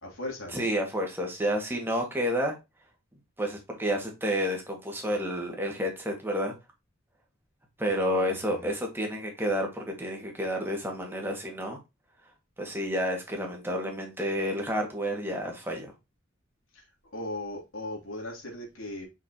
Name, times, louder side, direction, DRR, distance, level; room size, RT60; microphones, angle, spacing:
voice 1, 0.0-0.7 7.9-8.7 16.7-19.1, left 1 dB, 85° left, 3.0 m, -39 dB
voice 2, 0.5-2.5 3.4-6.5 7.8-11.8 12.6-15.9, equal, 10° right, 1.9 m, -30 dB
5.9 x 5.7 x 2.9 m
head